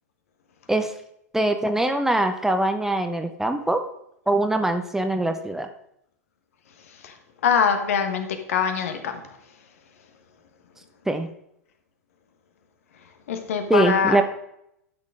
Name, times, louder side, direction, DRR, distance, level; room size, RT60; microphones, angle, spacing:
voice 1, 1.3-3.8 4.3-5.7 11.1-11.3 13.7-14.2, right 2 dB, 5° right, 7 dB, 0.6 m, -22 dB
voice 2, 7.4-9.2 13.3-14.2, left 7 dB, 60° left, 7 dB, 1.2 m, -23 dB
12.0 x 6.4 x 3.7 m, 0.76 s
figure-of-eight pair, 95°, 9 cm